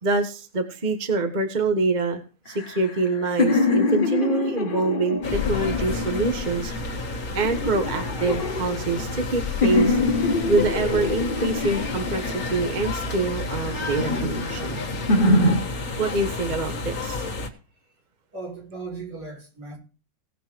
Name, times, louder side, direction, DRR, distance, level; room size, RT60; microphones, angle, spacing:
voice 1, 0.0-2.2 2.5-6.7 7.3-10.0 10.5-14.8 16.0-17.2, right 3 dB, 30° right, 1.1 m, -25 dB
sound 1, 2.5-6.8 7.4-9.3 9.6-13.0 13.5-15.6, left 2 dB, 30° left, 1.4 m, -25 dB
sound 2, 5.2-17.5, left 2 dB, 55° left, 2.0 m, -31 dB
sound 3, 5.3-13.7 13.9-14.1, left 6 dB, 10° right, 1.6 m, -37 dB
voice 2, 18.3-19.8, right 3 dB, 65° right, 4.5 m, -37 dB
18.0 x 6.0 x 4.5 m
omnidirectional pair, 1.9 m